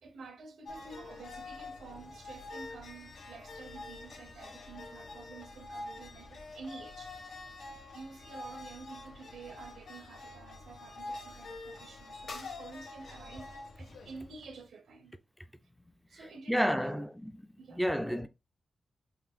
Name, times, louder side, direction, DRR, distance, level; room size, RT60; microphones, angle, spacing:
voice 1, 0.0-7.3 7.9-15.1 16.1-17.1 17.6-18.1, right 4 dB, 90° right, 0.5 m, -50 dB
sound 1, 0.7-14.7, left 2 dB, 80° left, 1.0 m, -46 dB
voice 2, 16.5-17.3 17.7-18.3, equal, ahead, 0.4 m, -30 dB
3.7 x 2.5 x 3.4 m
cardioid pair, 65°, 0 cm